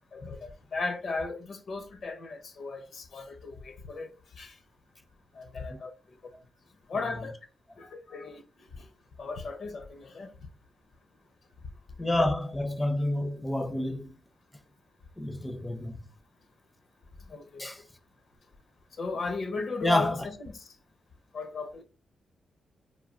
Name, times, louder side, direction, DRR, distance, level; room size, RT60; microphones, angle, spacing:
voice 1, 0.1-4.1 4.4-4.6 5.3-5.9 6.2-6.3 6.9-7.3 7.8-8.4 8.7-8.9 9.2-10.3 17.2-17.7 19.0-20.7 21.3-21.8, left 4 dB, 65° left, 0.6 m, -36 dB
voice 2, 12.0-14.1 15.2-16.0 17.6-17.8 19.8-20.2, left 1 dB, 10° left, 0.4 m, -28 dB
3.1 x 2.2 x 2.4 m
cardioid pair, 85°, 0 cm